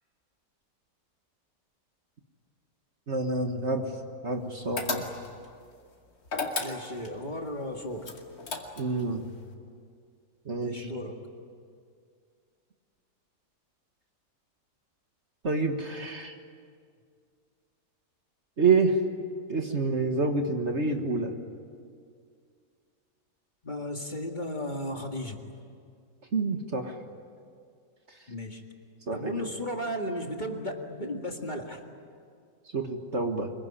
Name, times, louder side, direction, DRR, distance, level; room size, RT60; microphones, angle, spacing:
voice 1, 3.1-3.9 4.2-5.1 8.8-9.3 10.5-10.9 15.4-16.3 18.6-19.0 19.5-21.3 26.3-27.0 28.1-28.2 29.1-29.5 32.7-33.5, right 3 dB, 45° right, 5 dB, 1.8 m, -28 dB
sound 1, 4.8-5.5 6.3-7.2 8.0-9.0, left 3 dB, 60° left, 2.9 m, -33 dB
voice 2, 6.6-8.1 10.6-11.2 23.6-25.4 28.3-28.6 29.1-31.8, left 1 dB, 30° left, 2 dB, 2.0 m, -35 dB
25.5 x 22.5 x 10.0 m, 2.2 s
omnidirectional pair, 1.8 m